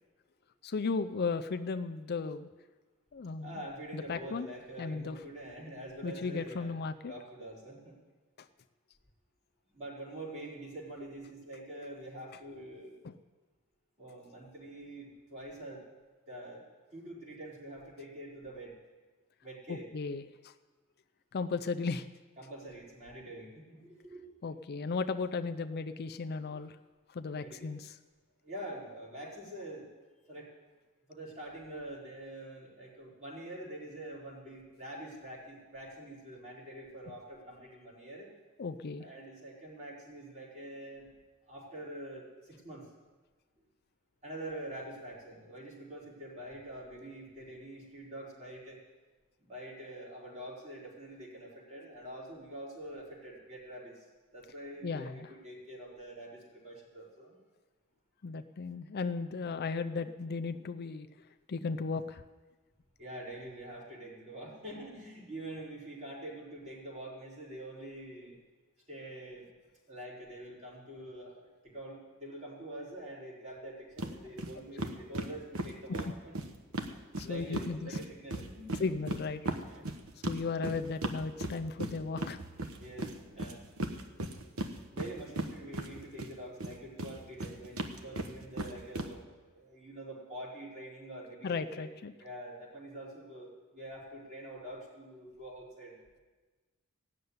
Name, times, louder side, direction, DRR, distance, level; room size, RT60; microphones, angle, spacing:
voice 1, 0.6-2.5 3.1-3.6 3.9-4.5 4.8-5.2 6.0-7.1 13.0-13.1 19.7-20.5 21.3-22.1 24.4-26.7 27.1-27.9 38.6-39.1 54.8-55.3 58.2-61.1 61.5-62.2 77.2-78.0 78.8-79.4 80.2-82.4 91.4-92.1, left 4 dB, 45° left, 8 dB, 0.5 m, -35 dB
voice 2, 3.4-6.7 7.1-7.9 9.7-12.9 14.0-15.8 16.3-16.6 16.9-18.7 19.4-19.9 22.4-24.3 26.5-26.6 27.4-27.7 28.4-29.9 30.3-30.5 31.1-38.3 39.0-41.1 41.5-42.8 44.2-48.8 49.4-54.0 54.3-57.4 63.0-68.4 68.9-69.5 69.9-76.3 77.2-78.8 79.7-79.8 82.8-83.6 84.9-89.3 89.5-91.9 92.2-96.0, right 1 dB, 35° right, -5 dB, 4.4 m, -45 dB
sound 1, 74.0-74.1 74.4-74.5 74.8-77.7 77.9-86.3 86.6-89.1, right 1 dB, 70° right, 1.1 m, -37 dB
16.0 x 6.7 x 9.5 m, 1.3 s
head